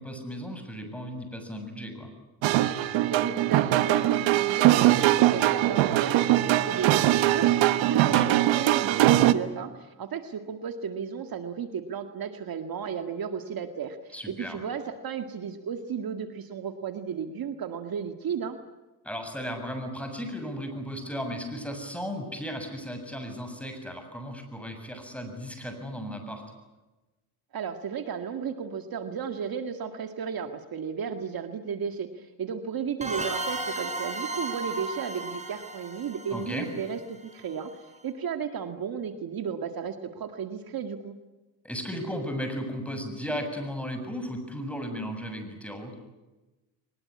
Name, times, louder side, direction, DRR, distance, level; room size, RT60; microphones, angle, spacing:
voice 1, 0.0-2.1 8.1-8.3 14.1-14.6 19.0-26.4 36.3-36.7 41.6-45.9, equal, 5° left, 6 dB, 7.2 m, -35 dB
sound 1, 2.4-9.3, right 14 dB, 85° right, 1.3 m, -22 dB
voice 2, 3.1-18.6 27.5-37.7 38.0-41.1, right 7 dB, 50° right, 7 dB, 2.0 m, -34 dB
sound 2, 33.0-37.5, right 2 dB, 15° right, 6.3 m, -35 dB
23.5 x 21.0 x 9.7 m, 1.1 s
cardioid pair, 95°, 44 cm